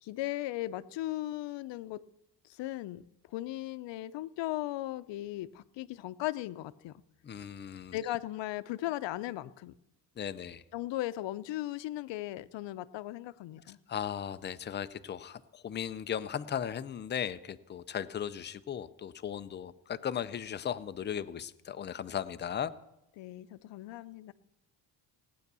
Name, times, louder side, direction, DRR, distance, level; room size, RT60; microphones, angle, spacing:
voice 1, 0.0-2.0 2.4-7.0 7.9-9.7 10.7-13.8 23.2-24.3, left 15 dB, 85° left, 14 dB, 0.7 m, -37 dB
voice 2, 7.2-8.0 10.2-10.6 13.9-22.7, left 9 dB, 25° left, 12 dB, 0.4 m, -37 dB
17.5 x 9.4 x 6.8 m, 0.89 s
cardioid pair, 170°, 43 cm